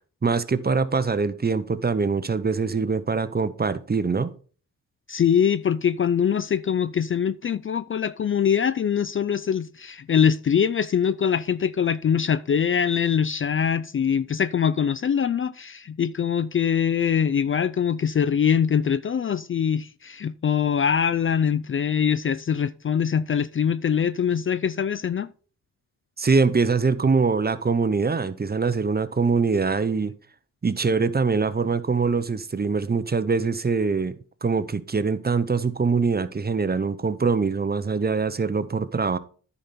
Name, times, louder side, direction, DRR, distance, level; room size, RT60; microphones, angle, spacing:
voice 1, 0.2-4.3 26.2-30.1 30.6-34.1 34.4-39.2, right 4 dB, 30° right, 0.8 m, -23 dB
voice 2, 5.1-25.3, left 7 dB, 40° left, 0.4 m, -23 dB
10.0 x 5.3 x 4.3 m
cardioid pair, 55°, 33 cm